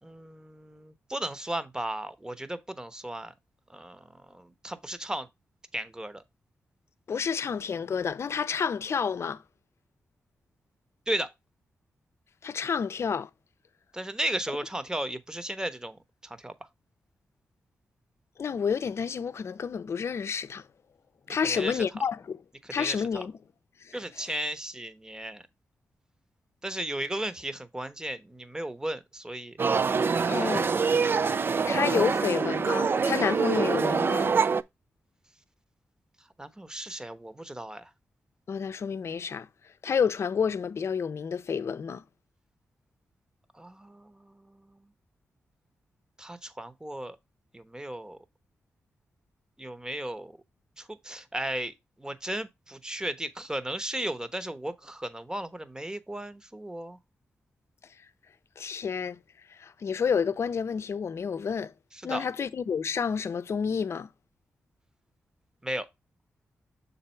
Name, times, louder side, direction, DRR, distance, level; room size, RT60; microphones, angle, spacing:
voice 1, 0.0-3.3 3.7-5.3 5.7-6.2 11.1-11.3 13.9-16.0 16.2-16.5 21.3-21.8 22.6-23.2 23.9-25.4 26.6-29.6 30.4-30.9 36.4-37.9 43.5-44.9 46.2-47.2 47.5-48.2 49.6-50.4 50.8-57.0 61.9-62.3 65.6-65.9, right 1 dB, 15° right, 1.0 m, -35 dB
voice 2, 7.1-9.4 12.4-13.3 18.4-20.6 21.3-22.4 22.7-23.3 23.9-24.0 30.3-30.7 31.6-34.3 38.5-39.5 39.8-42.0 58.6-59.2 59.6-61.7 62.0-64.1, left 6 dB, 65° left, 0.6 m, -29 dB
sound 1, 29.6-34.6, right 5 dB, 45° right, 0.4 m, -25 dB
6.6 x 4.1 x 4.4 m
cardioid pair, 60°, 5 cm